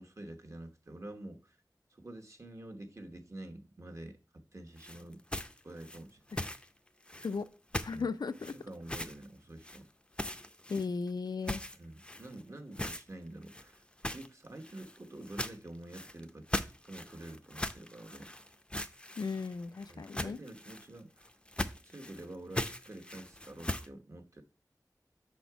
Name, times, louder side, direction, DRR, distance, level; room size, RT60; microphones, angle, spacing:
voice 1, 0.0-1.6 1.9-4.2 4.5-5.2 5.6-6.2 7.9-8.1 8.5-9.9 11.8-16.5 16.9-18.3 19.9-21.3 21.8-24.4, right 1 dB, 45° right, 1.1 m, -48 dB
sound 1, 4.8-6.7 7.1-7.5 7.7-8.0 8.3-9.3 9.6-9.8 10.1-11.1 11.4-12.4 12.7-13.0 13.4-23.9, left 1 dB, 15° left, 0.5 m, -40 dB
voice 2, 7.8-8.5 10.7-11.6 19.2-20.4, left 4 dB, 85° left, 0.4 m, -36 dB
5.9 x 4.3 x 4.6 m
wide cardioid pair, 50°, 7 cm